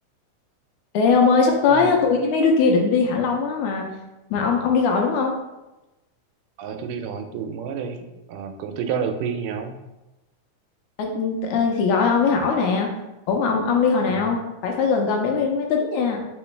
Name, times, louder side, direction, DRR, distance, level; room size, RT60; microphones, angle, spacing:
voice 1, 0.9-3.9 4.3-5.3 11.0-12.9 13.3-16.2, left 5 dB, 80° left, 1 dB, 1.9 m, -20 dB
voice 2, 6.6-9.8 14.1-14.3, right 6 dB, 90° right, 6 dB, 2.1 m, -30 dB
4.2 x 3.8 x 3.2 m, 1.0 s
omnidirectional pair, 3.7 m